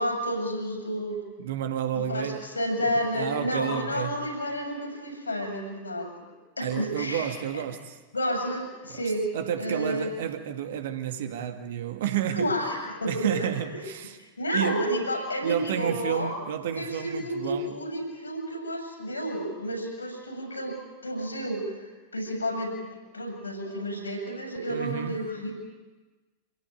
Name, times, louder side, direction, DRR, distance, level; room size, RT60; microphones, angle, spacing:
voice 1, 0.0-1.2 1.9-6.1 6.6-7.6 8.1-9.3 9.6-10.1 12.3-13.5 14.2-16.3 16.7-22.7 23.1-25.5, equal, 80° left, 7.2 m, -31 dB
voice 2, 1.4-2.5 3.2-4.2 6.6-8.0 8.9-9.0 9.3-12.5 13.1-14.2 14.5-14.8 15.4-17.7 24.7-25.2, right 9 dB, 55° right, 2.2 m, -31 dB
27.0 x 17.0 x 9.4 m
figure-of-eight pair, 90°, 0 cm